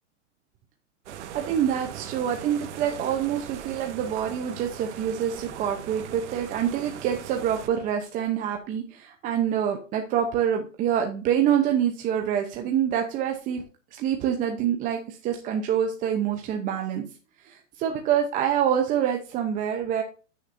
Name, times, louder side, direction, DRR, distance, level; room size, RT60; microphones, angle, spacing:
sound 1, 1.1-7.7, right 9 dB, 60° right, 1.5 m, -40 dB
voice 1, 1.3-13.6 13.9-17.0 17.4-20.0, right 9 dB, 20° right, 4 dB, 0.8 m, -26 dB
14.0 x 6.7 x 2.6 m, 0.36 s
hypercardioid pair, 150°, 39 cm